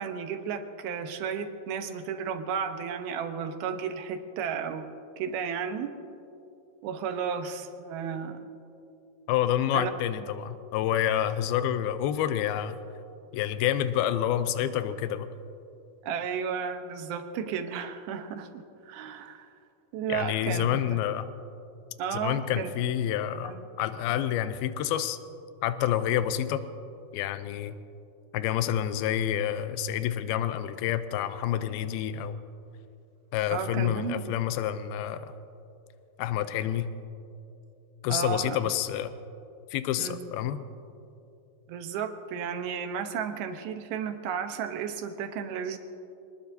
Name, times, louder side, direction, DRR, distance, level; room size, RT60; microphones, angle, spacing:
voice 1, 0.0-4.9 5.2-5.9 6.8-8.5 9.7-9.9 16.0-19.5 19.9-21.0 22.0-22.7 23.4-23.6 33.5-34.3 38.1-38.6 40.0-40.3 41.7-45.8, right 7 dB, 80° right, 6 dB, 2.8 m, -33 dB
voice 2, 9.3-12.8 13.3-15.3 20.1-21.3 22.1-25.2 25.6-26.6 27.1-27.8 28.3-32.4 33.3-35.3 36.2-36.9 38.0-39.1 39.7-40.6, left 11 dB, 85° left, 11 dB, 2.5 m, -28 dB
26.0 x 20.0 x 2.7 m, 2.7 s
omnidirectional pair, 4.4 m